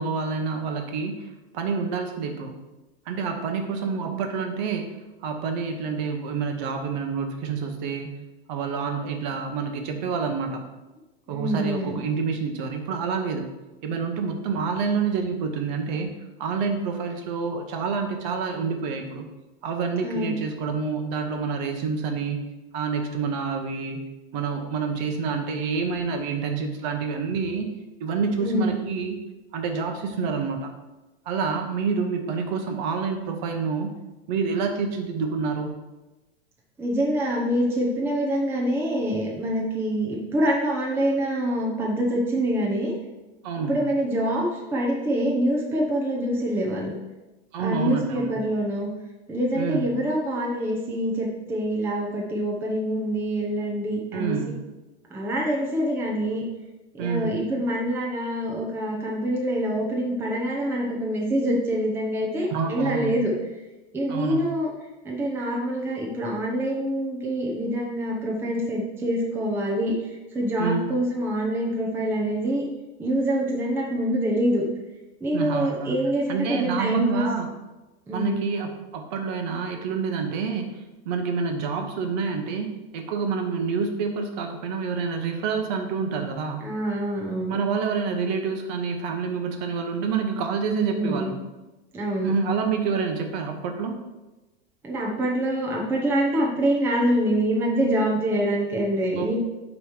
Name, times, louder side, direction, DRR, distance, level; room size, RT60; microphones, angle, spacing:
voice 1, 0.0-2.6 3.1-8.2 8.5-10.6 11.3-13.5 13.8-16.1 16.4-19.3 19.6-22.5 22.7-24.0 24.3-27.7 28.0-29.2 29.5-30.7 31.3-33.9 34.3-35.7 43.4-43.8 47.5-48.4 49.5-49.9 54.1-54.7 57.0-57.5 62.5-63.2 64.1-64.5 70.6-70.9 75.3-76.0 76.3-77.5 78.1-82.7 82.9-86.7 87.5-91.4 92.2-94.0 99.2-99.4, right 5 dB, 45° right, 5 dB, 0.9 m, -28 dB
voice 2, 11.3-12.0 20.0-20.3 28.4-28.7 36.8-42.9 43.7-46.9 47.6-48.9 49.3-54.4 55.1-56.4 56.9-63.3 63.9-64.7 65.0-69.9 70.3-72.6 73.0-74.6 75.2-77.3 78.1-78.4 86.6-87.6 90.6-91.3 91.9-92.3 94.8-99.4, right 1 dB, 5° right, -3 dB, 0.6 m, -25 dB
8.5 x 3.1 x 4.9 m, 1.1 s
supercardioid pair, 170°, 31 cm